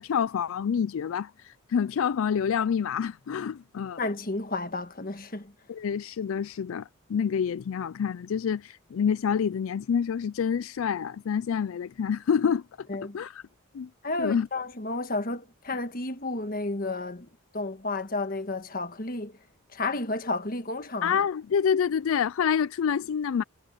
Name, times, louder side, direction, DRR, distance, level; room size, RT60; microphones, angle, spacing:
voice 1, 0.0-4.0 5.7-12.9 13.1-13.4 13.7-13.9 14.2-14.5 21.0-23.4, left 7 dB, 75° left, 0.4 m, -27 dB
voice 2, 4.0-5.5 12.9-13.2 14.0-17.3 17.5-19.3 19.7-21.1, left 2 dB, 40° left, 1.5 m, -32 dB
head